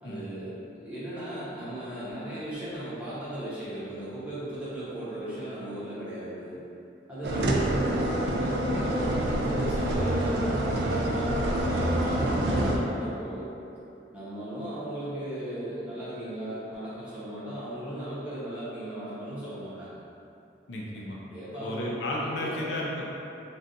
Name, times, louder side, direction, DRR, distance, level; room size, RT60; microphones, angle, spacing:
voice 1, 0.0-6.6 7.1-13.5 14.1-20.0 20.9-21.9 22.2-22.6, right 1 dB, 5° right, -12 dB, 0.8 m, -37 dB
sound 1, 7.2-12.8, right 1 dB, 60° right, 0.3 m, -26 dB
voice 2, 20.7-21.2 21.6-23.1, left 1 dB, 75° left, -4 dB, 0.5 m, -33 dB
2.5 x 2.3 x 3.8 m, 2.7 s
head